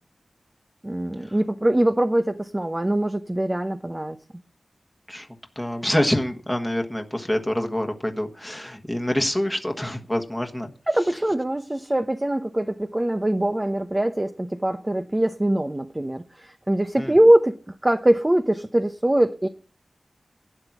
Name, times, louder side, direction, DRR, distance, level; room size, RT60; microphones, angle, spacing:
voice 1, 0.8-4.2 10.9-17.6 17.8-19.5, right 1 dB, 20° right, 8 dB, 0.8 m, -22 dB
voice 2, 5.5-10.7 17.0-17.1, left 1 dB, 5° left, 3 dB, 1.4 m, -26 dB
12.0 x 8.9 x 6.1 m, 0.37 s
wide cardioid pair, 85°, 0 cm